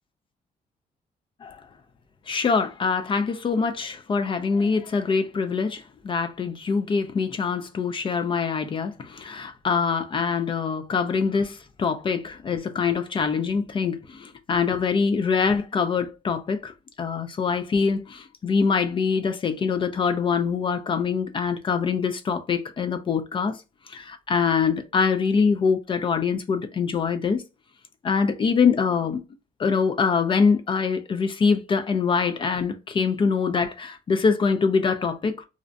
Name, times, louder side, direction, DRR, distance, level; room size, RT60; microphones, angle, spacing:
voice 1, 2.3-16.7 17.0-23.6 23.9-27.4 28.0-29.2 29.6-35.5, left 5 dB, 35° left, 0.3 m, -24 dB
2.5 x 2.1 x 2.5 m
cardioid pair, 120°, 15 cm